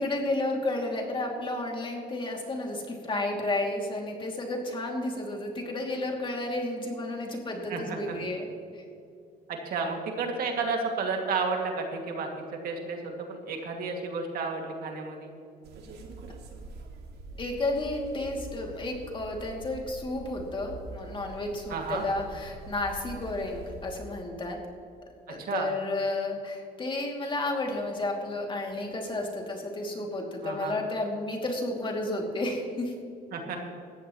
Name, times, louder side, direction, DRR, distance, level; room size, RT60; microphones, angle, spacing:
voice 1, 0.0-8.8 17.4-24.6 25.3-32.9, left 2 dB, 30° left, 1 dB, 2.7 m, -32 dB
voice 2, 7.7-8.2 9.5-12.3 12.6-15.3 21.7-22.0 25.5-25.7 30.4-30.7 33.3-33.6, right 4 dB, 60° right, 2 dB, 2.3 m, -32 dB
sound 1, 15.6-24.0, right 2 dB, 80° right, 2.1 m, -44 dB
19.0 x 14.5 x 3.1 m, 2.6 s
cardioid pair, 110°, 17 cm